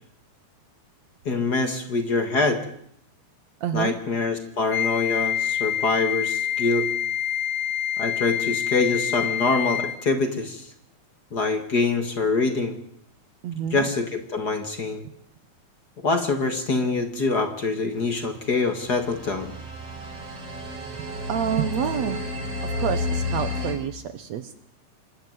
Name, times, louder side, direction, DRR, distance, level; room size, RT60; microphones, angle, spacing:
voice 1, 1.3-2.6 3.7-6.9 8.0-10.7 11.3-12.8 13.7-15.0 16.0-19.5, left 3 dB, 35° left, 8 dB, 1.9 m, -25 dB
voice 2, 3.6-3.9 13.4-13.9 21.0-22.2 22.6-24.6, right 8 dB, 70° right, 12 dB, 2.0 m, -28 dB
Wind instrument woodwind instrument, 4.7-10.1, left 10 dB, 70° left, 2.3 m, -27 dB
sound 1, 18.3-23.7, left 2 dB, 50° right, 5.3 m, -31 dB
26.0 x 11.5 x 9.5 m, 0.69 s
omnidirectional pair, 3.6 m